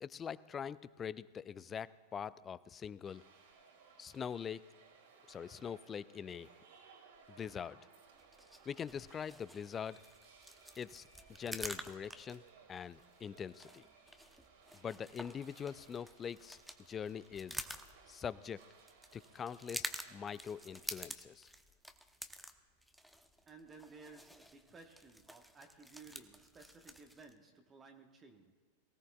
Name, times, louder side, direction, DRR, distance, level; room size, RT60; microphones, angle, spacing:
voice 1, 0.0-3.2 4.0-4.6 5.3-6.5 7.3-7.8 8.7-10.0 10.8-11.1 11.4-12.4 12.7-13.8 14.8-16.6 16.9-17.6 18.1-18.6 19.1-21.5, left 7 dB, 20° left, 19 dB, 0.4 m, -43 dB
sound 1, 3.0-20.9, right 5 dB, 55° right, 2.3 m, -63 dB
sound 2, 8.2-27.3, equal, ahead, 0.8 m, -49 dB
voice 2, 23.5-28.5, right 4 dB, 20° right, 4 dB, 1.2 m, -57 dB
22.5 x 16.5 x 2.3 m, 1.4 s
figure-of-eight pair, 90°, 0 cm